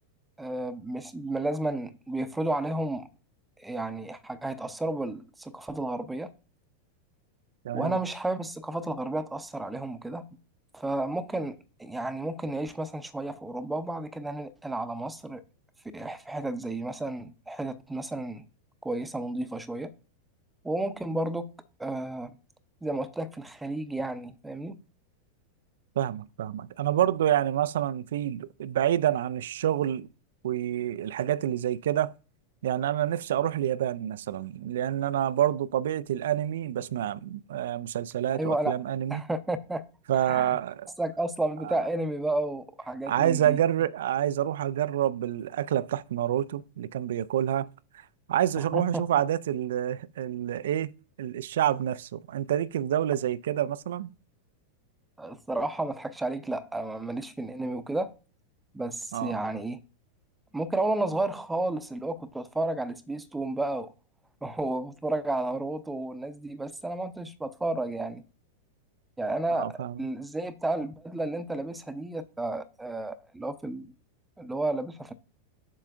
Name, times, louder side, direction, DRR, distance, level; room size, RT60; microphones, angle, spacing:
voice 1, 0.4-3.1 3.6-6.3 7.7-10.2 10.7-15.4 15.9-18.4 18.8-19.9 20.6-21.5 21.8-22.3 22.8-24.8 38.3-38.7 39.1-39.9 40.2-40.6 41.0-43.6 48.6-49.0 55.2-58.1 58.7-59.8 60.5-63.9 64.4-68.2 69.2-73.9 74.4-75.1, right 2 dB, 5° right, 0.6 m, -32 dB
voice 2, 7.6-8.0 26.0-30.1 30.4-32.1 32.6-39.2 40.1-40.9 41.6-41.8 43.1-47.7 48.3-50.9 51.2-54.1 59.1-59.4 69.6-70.0, right 11 dB, 60° right, 0.3 m, -28 dB
7.5 x 6.3 x 2.5 m
figure-of-eight pair, 90°, 0 cm